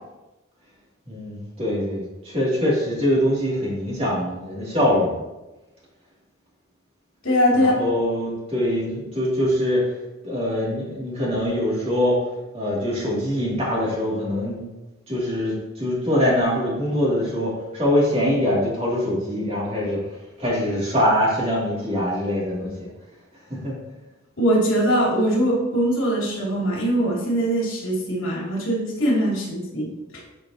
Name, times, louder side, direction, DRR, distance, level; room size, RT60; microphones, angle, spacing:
voice 1, 1.1-5.2 7.5-9.9 10.2-12.2 12.5-14.6 15.1-20.0 20.4-22.9 23.5-23.8, equal, 30° right, -5 dB, 2.6 m, -23 dB
voice 2, 7.2-7.7 24.4-29.9, equal, 85° left, -4 dB, 2.7 m, -21 dB
11.0 x 5.3 x 2.9 m, 1.0 s
head